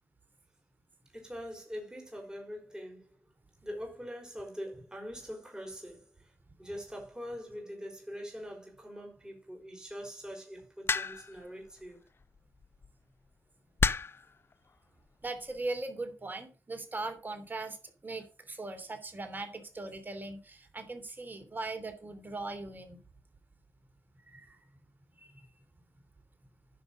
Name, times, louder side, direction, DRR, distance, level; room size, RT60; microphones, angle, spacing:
voice 1, 1.1-3.0 3.6-6.3 6.6-12.0, equal, 15° right, 5.2 m, -43 dB
sound 1, 10.9-11.4 12.6-12.9 13.8-14.3 15.2-15.6, left 5 dB, 45° left, 0.6 m, -30 dB
voice 2, 15.2-17.8 18.0-23.0 24.3-24.6 25.2-25.5, right 2 dB, 35° right, 2.9 m, -39 dB
10.5 x 5.5 x 6.4 m
cardioid pair, 60°, 5 cm